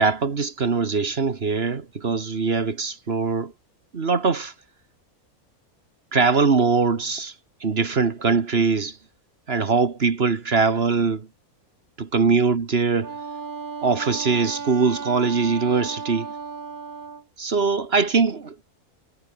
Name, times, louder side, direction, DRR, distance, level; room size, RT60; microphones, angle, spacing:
voice 1, 0.0-3.5 3.9-4.5 6.1-7.3 7.6-9.0 9.5-11.3 12.0-13.1 13.8-16.3 17.4-18.5, right 4 dB, 45° right, 1.6 m, -22 dB
Wind instrument woodwind instrument, 13.0-17.2, right 5 dB, 75° right, 2.6 m, -34 dB
omnidirectional pair, 1.6 m